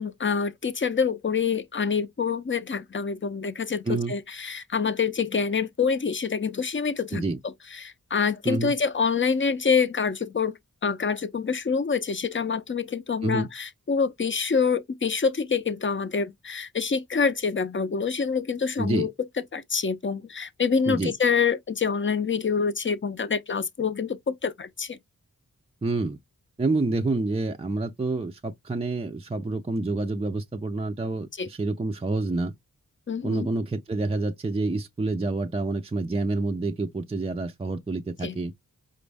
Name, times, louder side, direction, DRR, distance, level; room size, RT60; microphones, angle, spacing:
voice 1, 0.0-7.2 7.7-19.1 19.5-25.0 31.4-31.5 33.1-33.5 38.2-38.4, left 5 dB, 35° left, 0.5 m, -26 dB
voice 2, 18.8-19.1 20.9-21.1 25.8-26.2 26.6-32.5 33.2-38.5, right 2 dB, 20° right, 0.4 m, -28 dB
5.1 x 2.1 x 3.3 m
wide cardioid pair, 75°, 34 cm